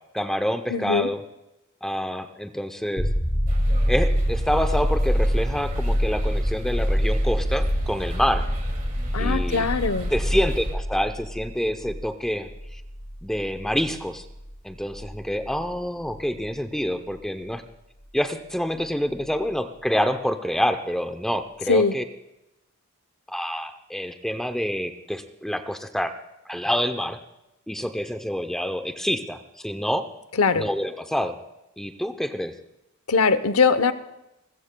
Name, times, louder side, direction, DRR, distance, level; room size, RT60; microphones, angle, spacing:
voice 1, 0.1-1.2 1.8-3.1 3.9-8.4 9.2-9.7 10.1-12.8 13.2-14.2 14.6-17.6 18.1-22.0 23.3-26.1 26.5-27.2 27.7-30.1 30.5-31.4 31.8-32.5, equal, ahead, 8 dB, 0.6 m, -27 dB
voice 2, 0.7-1.1 9.1-10.1 21.7-22.0 30.4-30.7 33.1-33.9, left 5 dB, 80° left, 13 dB, 0.8 m, -21 dB
sound 1, 3.0-16.5 19.2-19.3, equal, 20° left, 1.7 m, -27 dB
sound 2, 3.5-10.7, equal, 40° right, 2.3 m, -28 dB
29.5 x 14.0 x 2.2 m, 0.90 s
head